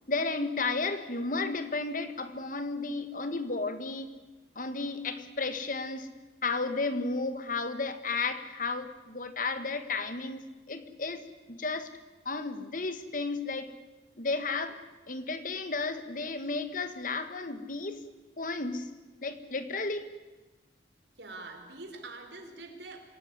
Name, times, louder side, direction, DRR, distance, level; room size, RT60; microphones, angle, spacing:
voice 1, 0.1-4.2 4.6-6.1 6.4-11.2 11.5-11.9 12.3-13.7 14.2-14.8 15.1-18.0 18.4-18.9 19.2-20.1, left 3 dB, 50° left, 10 dB, 1.7 m, -33 dB
voice 2, 21.2-23.1, right 2 dB, 75° right, 5 dB, 4.4 m, -44 dB
26.5 x 17.5 x 9.7 m, 1.2 s
head